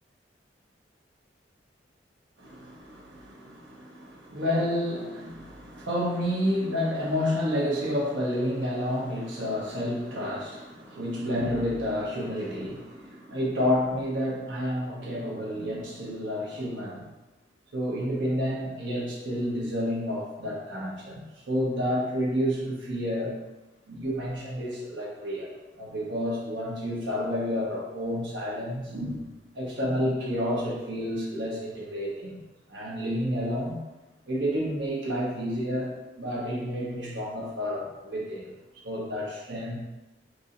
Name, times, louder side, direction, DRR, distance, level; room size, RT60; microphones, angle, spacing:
voice 1, 2.4-17.1 17.7-21.2 21.5-23.3 23.9-25.5 25.8-29.2 29.5-32.4 32.7-33.8 34.3-35.9 36.2-38.4 38.8-39.8, equal, 90° right, -4 dB, 1.1 m, -30 dB
4.7 x 2.7 x 2.6 m, 1.0 s
head